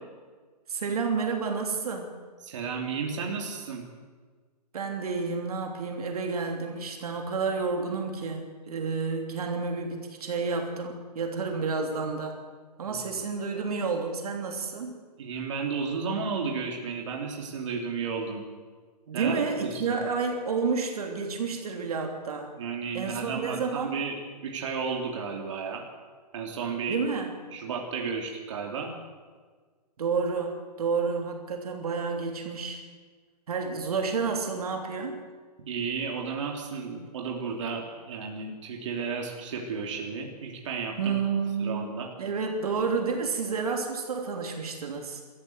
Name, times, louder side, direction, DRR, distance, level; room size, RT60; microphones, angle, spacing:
voice 1, 0.7-2.2 4.7-12.4 12.8-14.9 19.1-22.5 22.9-24.0 26.9-27.4 30.0-32.8 33.5-35.2 41.0-41.9 42.2-45.2, right 5 dB, 65° right, 3 dB, 3.2 m, -30 dB
voice 2, 2.4-3.8 12.9-13.0 15.2-18.4 19.1-20.0 22.6-24.2 24.4-25.8 26.3-27.0 27.5-28.9 35.7-41.1 41.6-42.1, right 5 dB, 45° right, 0 dB, 3.1 m, -33 dB
23.0 x 14.0 x 8.0 m, 1.5 s
hypercardioid pair, 175°, 21 cm